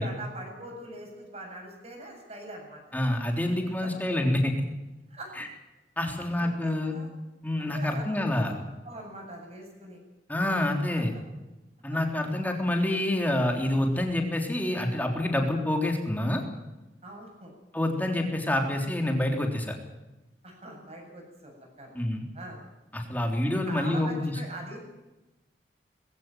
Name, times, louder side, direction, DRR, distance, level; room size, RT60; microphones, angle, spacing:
voice 1, 0.0-3.0 3.8-3.9 5.1-5.4 6.0-7.1 7.6-8.5 8.8-10.0 10.5-10.7 10.9-11.0 12.5-12.6 17.0-17.5 18.6-18.7 20.4-22.0 22.3-22.6 23.2-23.4 23.7-24.8, right 1 dB, 35° right, 1 dB, 7.9 m, -43 dB
voice 2, 2.9-4.5 5.4-5.5 6.0-7.0 7.4-8.5 10.3-11.1 11.8-16.4 17.7-19.7 22.0-22.3 22.9-24.3, left 1 dB, 10° left, 2 dB, 3.6 m, -27 dB
21.5 x 16.0 x 9.3 m, 1.0 s
head